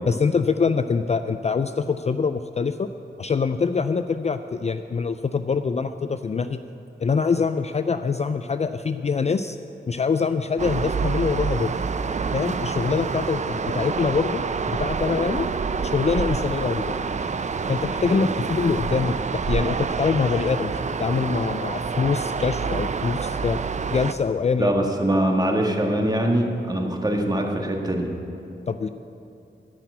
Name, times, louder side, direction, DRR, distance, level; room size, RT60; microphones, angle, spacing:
voice 1, 0.1-2.9 3.2-6.6 7.0-9.6 9.9-11.7 12.3-15.5 15.9-17.0 17.7-23.6 23.9-24.9 28.7-28.9, left 5 dB, 35° left, 10 dB, 0.4 m, -24 dB
sound 1, 10.6-24.1, right 5 dB, 40° right, 0.5 m, -27 dB
voice 2, 24.6-28.1, right 1 dB, 20° right, 1 dB, 1.6 m, -23 dB
13.5 x 5.9 x 8.3 m, 2.6 s
cardioid pair, 70°, 19 cm